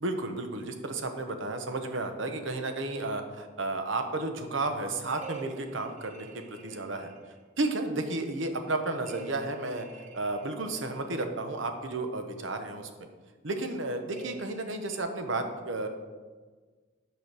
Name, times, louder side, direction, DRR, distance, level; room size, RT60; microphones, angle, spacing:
voice 1, 0.0-7.1 7.6-9.9 10.1-12.9 13.4-15.9, right 2 dB, 80° right, 6 dB, 1.0 m, -32 dB
sound 1, 5.1-7.4 9.1-11.1 14.1-15.0, right 8 dB, 40° right, 0.9 m, -48 dB
9.1 x 5.1 x 6.2 m, 1.4 s
head